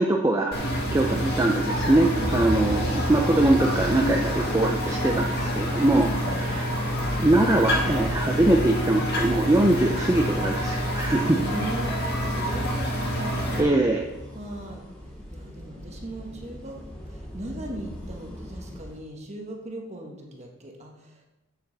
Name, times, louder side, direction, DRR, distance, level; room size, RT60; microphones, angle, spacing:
voice 1, 0.0-6.1 6.4-6.7 7.2-11.4 13.6-14.0, right 1 dB, 15° right, 1 dB, 0.4 m, -22 dB
sound 1, 0.5-13.6, equal, 45° left, 1.6 m, -27 dB
voice 2, 6.0-6.5 11.2-13.7 14.3-14.8 15.3-21.3, right 1 dB, 30° right, 1 dB, 1.2 m, -38 dB
sound 2, 7.3-19.0, equal, 5° left, 2.1 m, -42 dB
8.5 x 7.3 x 3.9 m, 1.0 s
head